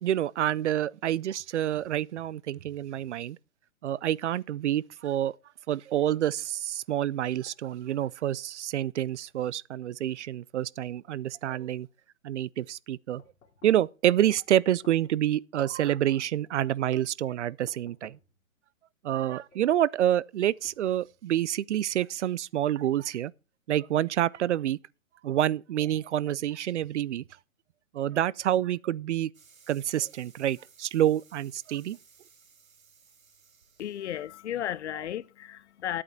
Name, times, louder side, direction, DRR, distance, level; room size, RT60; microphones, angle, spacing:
voice 1, 0.0-3.4 3.8-5.3 5.7-11.9 12.2-13.2 13.6-18.2 19.0-23.3 23.7-24.8 25.2-27.2 27.9-29.3 29.7-32.0, right 11 dB, 60° right, 0.5 m, -28 dB
sound 1, 13.2-13.9 14.6-15.3 16.1-16.8 17.7-18.4 19.1-19.7 20.5-21.3, left 6 dB, 80° left, 2.7 m, -59 dB
sound 2, 29.3-34.5, right 5 dB, 85° right, 2.2 m, -59 dB
voice 2, 33.8-36.0, left 11 dB, 55° left, 0.6 m, -34 dB
11.0 x 8.6 x 4.4 m
hypercardioid pair, 135°, 40 cm